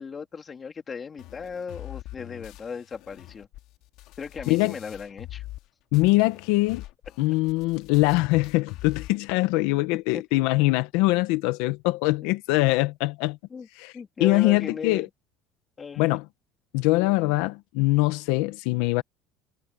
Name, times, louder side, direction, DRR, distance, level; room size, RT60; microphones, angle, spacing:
voice 1, 0.0-3.5 4.2-5.4 10.1-10.2 13.5-13.7 13.9-15.1 15.8-16.2, left 5 dB, 20° left, 2.4 m, -37 dB
sound 1, 1.2-5.7 5.9-9.2, left 16 dB, 55° left, 2.3 m, -43 dB
voice 2, 5.9-6.8 7.2-13.4 13.8-13.9 14.2-15.1 16.0-16.2 16.7-19.0, left 21 dB, 75° left, 0.8 m, -23 dB
cardioid pair, 170°, 0 cm